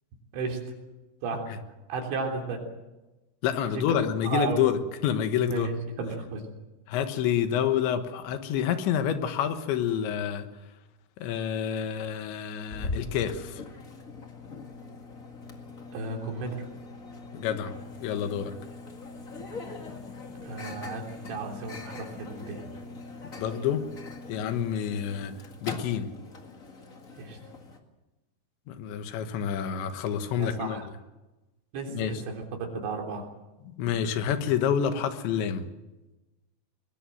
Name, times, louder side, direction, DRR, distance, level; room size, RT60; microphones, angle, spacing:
voice 1, 0.3-0.6 1.2-1.5 1.9-2.7 3.7-3.9 4.2-4.6 5.5-6.4 15.9-16.7 20.4-22.7 27.2-27.4 30.4-30.9 31.7-33.3, right 4 dB, 90° right, 2 dB, 5.8 m, -34 dB
voice 2, 3.4-5.7 6.9-10.5 11.2-13.6 17.3-17.7 18.0-18.5 23.4-23.8 24.3-25.3 25.6-26.1 28.7-30.8 31.9-32.1 33.7-35.7, left 9 dB, 90° left, 9 dB, 3.7 m, -28 dB
Microwave oven, 12.7-27.8, left 3 dB, 55° left, 0.9 m, -41 dB
21.5 x 21.0 x 7.8 m, 1.1 s
omnidirectional pair, 5.0 m